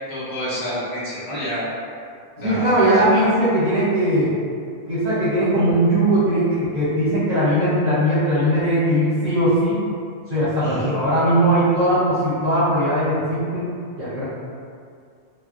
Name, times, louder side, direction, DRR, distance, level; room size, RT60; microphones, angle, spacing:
voice 1, 0.1-1.7 2.4-3.2 10.6-10.9, equal, 60° left, -10 dB, 1.1 m, -28 dB
voice 2, 2.4-4.3 4.9-9.8 10.3-13.7 14.0-14.2, right 1 dB, 40° right, -11 dB, 0.7 m, -19 dB
3.8 x 2.1 x 2.4 m, 2.3 s
omnidirectional pair, 1.3 m